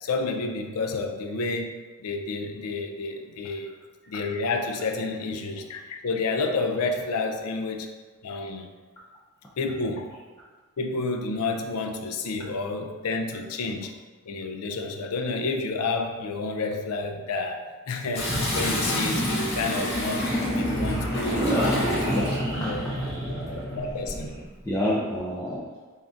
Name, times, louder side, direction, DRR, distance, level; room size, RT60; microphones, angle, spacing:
voice 1, 0.0-3.7 4.1-7.9 8.2-8.7 9.6-10.2 10.8-13.9 14.3-21.4 22.2-22.3 22.6-22.9 23.7-24.3, left 3 dB, 85° left, 4 dB, 0.4 m, -30 dB
Toilet flush, 18.1-22.5 23.8-24.3, equal, 45° left, 0.8 m, -30 dB
sound 1, 18.2-24.4, equal, 20° right, 1.2 m, -29 dB
voice 2, 21.4-22.3 24.6-25.6, left 1 dB, 15° left, -7 dB, 0.4 m, -28 dB
3.8 x 3.6 x 2.4 m, 1.4 s
head